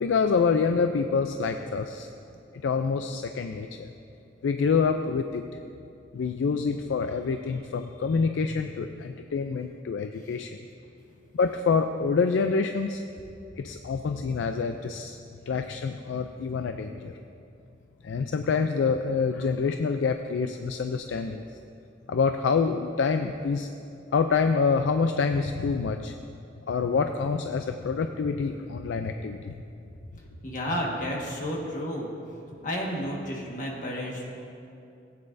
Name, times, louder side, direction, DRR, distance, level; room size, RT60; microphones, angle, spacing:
voice 1, 0.0-2.1 2.6-3.9 4.4-5.4 6.1-10.6 11.3-13.0 13.6-15.2 15.5-17.2 18.0-21.5 22.1-23.7 24.1-26.2 26.7-29.6, left 5 dB, 85° left, 7 dB, 0.4 m, -26 dB
voice 2, 30.4-32.1 32.6-34.3, equal, 45° left, -2 dB, 1.5 m, -31 dB
16.0 x 9.0 x 2.6 m, 2.6 s
head